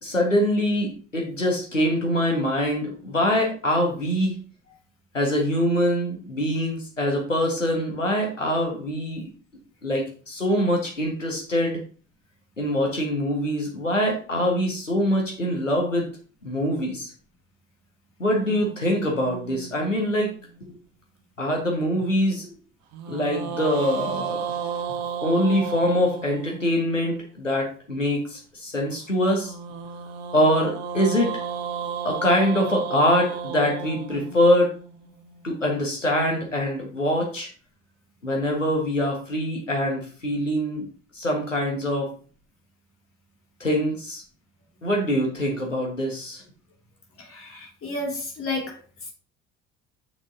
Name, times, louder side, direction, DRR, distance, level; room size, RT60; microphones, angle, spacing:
voice 1, 0.0-4.3 5.1-9.2 9.8-11.8 12.6-16.1 16.4-17.1 18.2-20.3 21.4-22.5 23.1-24.5 25.2-29.5 30.3-31.3 32.0-34.7 35.4-37.5 38.2-40.9 41.1-42.1 43.6-44.2 44.8-46.4, equal, 90° left, 0 dB, 1.6 m, -24 dB
sound 1, 18.3-20.7 22.9-27.1 29.2-35.4, right 7 dB, 60° right, 1.1 m, -33 dB
voice 2, 47.2-48.8, left 2 dB, 35° left, 0 dB, 2.5 m, -31 dB
7.2 x 6.4 x 2.8 m, 0.39 s
figure-of-eight pair, 60°, 37 cm